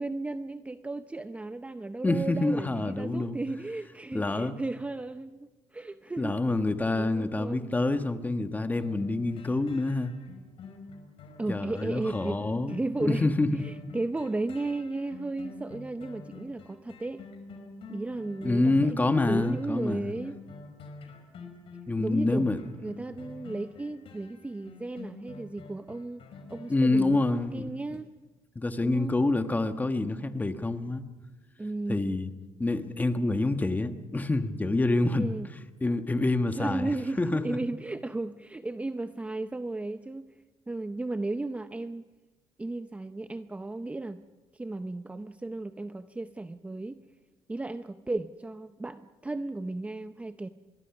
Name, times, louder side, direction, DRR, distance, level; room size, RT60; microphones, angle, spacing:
voice 1, 0.0-6.4 7.0-7.7 11.4-12.4 12.7-17.2 17.9-20.4 22.0-22.5 22.8-26.2 26.5-28.1 28.8-29.1 31.6-32.1 35.1-35.5 36.6-42.0 42.6-44.2 44.5-47.0 47.5-50.5, right 2 dB, 10° right, 0.6 m, -35 dB
voice 2, 2.0-3.4 4.1-4.5 6.2-10.1 11.5-13.6 18.4-20.1 21.9-22.6 26.7-27.8 28.5-31.0 31.9-32.3 32.6-35.4 35.8-36.9 37.2-37.6, left 2 dB, 15° left, 1.4 m, -27 dB
sound 1, 8.8-27.5 27.9-28.0, left 4 dB, 60° left, 5.2 m, -47 dB
25.5 x 22.0 x 6.0 m
cardioid pair, 115°, 11 cm